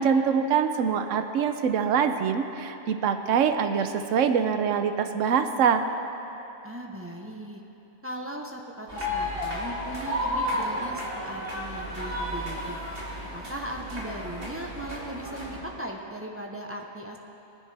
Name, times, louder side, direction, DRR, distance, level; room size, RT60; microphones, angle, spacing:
voice 1, 0.0-5.8, right 7 dB, 75° right, 8 dB, 1.0 m, -24 dB
voice 2, 6.6-7.6 8.0-12.8 13.3-17.2, right 1 dB, 10° right, 0 dB, 0.8 m, -38 dB
sound 1, 8.9-15.6, left 1 dB, 45° right, 2.4 m, -32 dB
22.5 x 9.9 x 3.4 m, 3.0 s
omnidirectional pair, 1.4 m